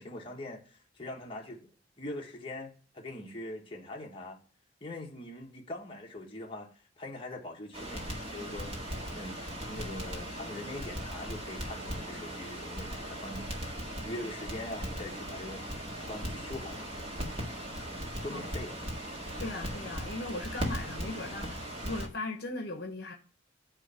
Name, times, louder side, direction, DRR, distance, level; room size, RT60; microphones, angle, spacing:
voice 1, 0.0-1.7 2.0-4.4 4.8-6.7 7.0-8.8 9.1-13.5 14.0-16.9 18.2-18.8, left 1 dB, 30° left, 1.4 m, -42 dB
Crackle, 7.7-22.1, equal, 30° right, 1.8 m, -38 dB
voice 2, 19.4-23.1, left 2 dB, 55° left, 1.1 m, -38 dB
9.5 x 3.3 x 6.9 m
head